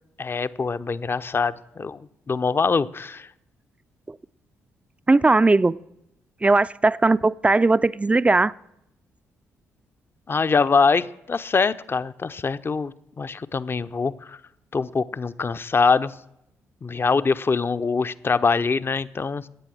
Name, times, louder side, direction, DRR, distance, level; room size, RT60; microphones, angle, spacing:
voice 1, 0.2-2.0 2.3-3.3 10.3-14.4 14.7-16.1 16.8-19.4, left 4 dB, 30° left, 0.6 m, -23 dB
voice 2, 5.1-5.8 6.4-8.5, right 3 dB, 15° right, 0.4 m, -18 dB
15.5 x 8.9 x 6.2 m
figure-of-eight pair, 40°, 7 cm